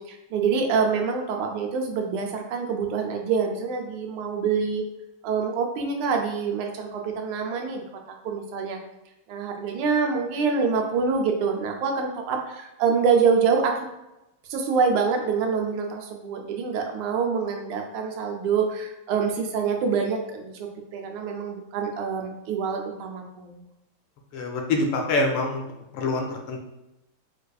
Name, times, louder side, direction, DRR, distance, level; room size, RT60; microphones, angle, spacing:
voice 1, 0.1-4.8 5.2-7.8 8.2-8.8 9.3-13.9 14.5-23.6, right 5 dB, 85° right, 3 dB, 1.5 m, -26 dB
voice 2, 24.3-25.6 25.9-26.6, left 2 dB, 85° left, 2 dB, 1.6 m, -25 dB
4.5 x 2.5 x 2.3 m, 0.92 s
omnidirectional pair, 2.4 m